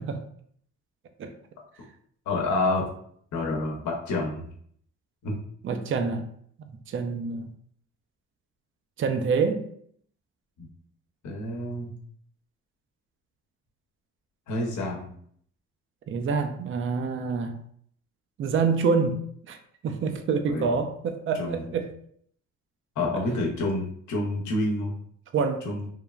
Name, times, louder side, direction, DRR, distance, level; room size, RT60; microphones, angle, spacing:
voice 1, 2.3-2.9 3.3-4.5 5.2-5.3 10.6-10.7 11.2-11.9 14.5-15.1 20.5-20.8 21.4-21.7 23.0-24.9 25.6-25.9, left 2 dB, 75° left, -1 dB, 0.8 m, -28 dB
voice 2, 5.6-6.2 6.9-7.5 9.0-9.6 16.1-17.5 18.4-19.6 19.8-21.9 25.3-25.7, right 5 dB, 45° right, 7 dB, 0.4 m, -26 dB
3.1 x 2.1 x 2.3 m, 0.63 s
cardioid pair, 90°, 30 cm